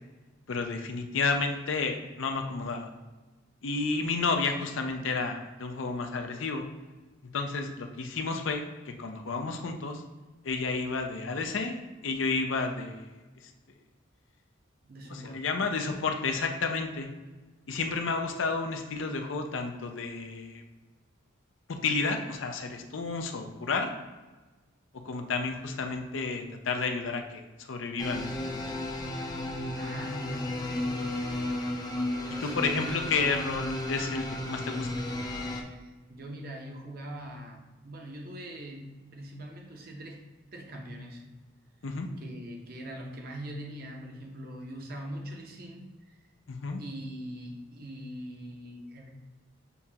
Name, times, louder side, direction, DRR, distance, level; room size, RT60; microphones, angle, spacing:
voice 1, 0.5-2.9 3.6-6.6 7.3-10.0 10.4-13.2 15.1-17.1 17.7-20.6 21.7-23.9 25.0-28.8 32.4-34.9 41.8-42.1 46.5-46.8, left 4 dB, 70° left, 5 dB, 0.5 m, -31 dB
voice 2, 14.8-15.4 29.7-31.2 32.3-33.0 35.7-40.2 40.5-41.2 42.2-46.2 46.8-49.1, equal, 50° right, 1 dB, 0.8 m, -42 dB
sound 1, 28.0-35.6, left 1 dB, 20° left, 0.4 m, -34 dB
6.9 x 2.4 x 2.8 m, 1.2 s
head